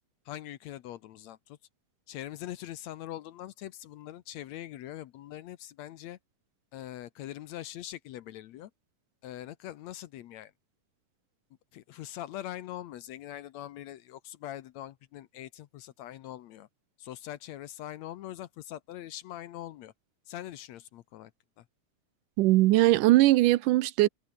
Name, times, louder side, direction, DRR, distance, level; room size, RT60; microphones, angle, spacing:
voice 1, 0.3-1.6 2.1-6.2 6.7-8.7 9.2-10.5 11.7-16.7 17.0-19.9 20.3-21.3 21.6-21.7, left 13 dB, 70° left, 1.9 m, -42 dB
voice 2, 22.4-24.1, right 17 dB, 85° right, 2.3 m, -20 dB
omnidirectional pair, 3.7 m